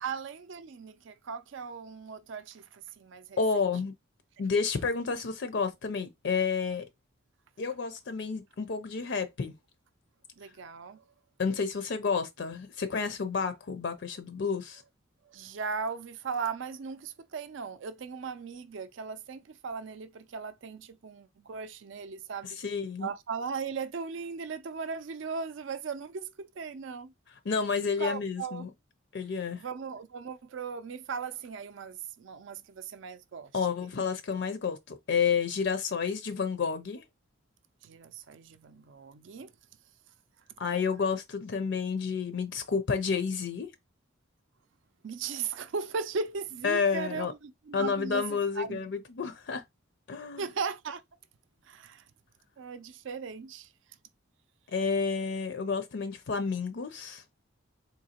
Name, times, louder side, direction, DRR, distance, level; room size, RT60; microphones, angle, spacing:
voice 1, 0.0-3.4 10.4-11.0 15.3-22.6 23.0-27.1 28.0-28.7 29.5-33.5 37.8-39.5 45.0-48.8 50.4-51.0 51.6-52.0 52.6-53.7, right 5 dB, 60° right, 0.4 m, -37 dB
voice 2, 3.4-3.9 4.4-6.9 7.6-9.5 11.4-14.8 22.4-23.1 27.4-28.7 29.1-29.6 33.5-37.0 40.6-43.7 46.6-47.3 47.7-49.6 50.1-50.4 54.7-57.2, left 5 dB, 55° left, 0.4 m, -30 dB
3.9 x 2.7 x 2.8 m
head